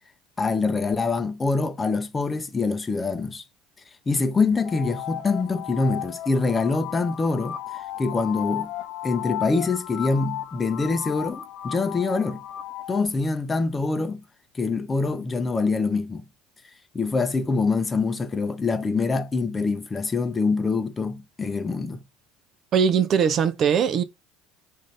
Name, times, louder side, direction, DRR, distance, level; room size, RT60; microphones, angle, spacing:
voice 1, 0.4-3.4 4.1-7.6 8.0-8.7 9.0-12.4 12.9-14.2 14.5-16.2 16.9-22.0, left 4 dB, 20° left, 0.6 m, -25 dB
sound 1, 4.6-13.1, left 12 dB, 70° left, 0.5 m, -35 dB
voice 2, 22.7-24.0, right 7 dB, 45° right, 0.5 m, -20 dB
3.8 x 2.6 x 3.2 m
supercardioid pair, 95°, 0 cm